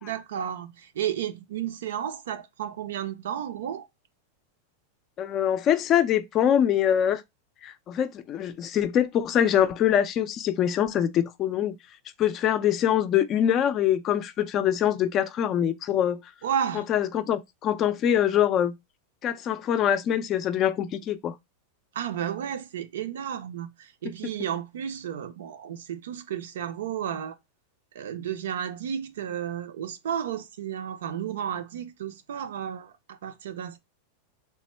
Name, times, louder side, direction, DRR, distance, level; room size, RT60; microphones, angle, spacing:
voice 1, 0.0-3.9 16.4-16.8 21.9-27.3 27.9-33.8, right 9 dB, 85° right, 0.6 m, -32 dB
voice 2, 5.2-7.2 7.6-11.8 12.2-16.2 16.7-18.7 19.2-21.3, left 10 dB, 30° left, 0.4 m, -24 dB
3.4 x 2.1 x 4.2 m
supercardioid pair, 155°, 0 cm